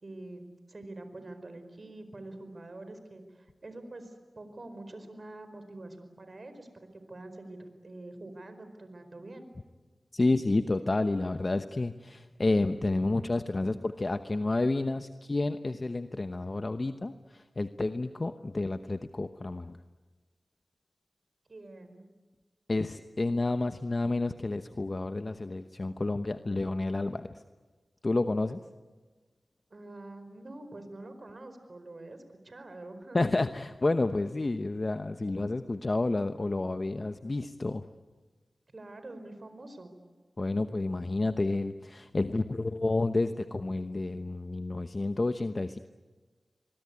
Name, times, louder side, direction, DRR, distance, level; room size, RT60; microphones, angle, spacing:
voice 1, 0.0-9.5 21.5-22.1 29.7-33.3 38.7-39.9, right 2 dB, 50° right, 9 dB, 4.6 m, -46 dB
voice 2, 10.1-19.8 22.7-27.3 28.0-28.6 33.1-37.9 40.4-45.8, left 2 dB, 40° left, 9 dB, 1.0 m, -30 dB
24.0 x 23.0 x 9.7 m, 1.3 s
cardioid pair, 50°, 0 cm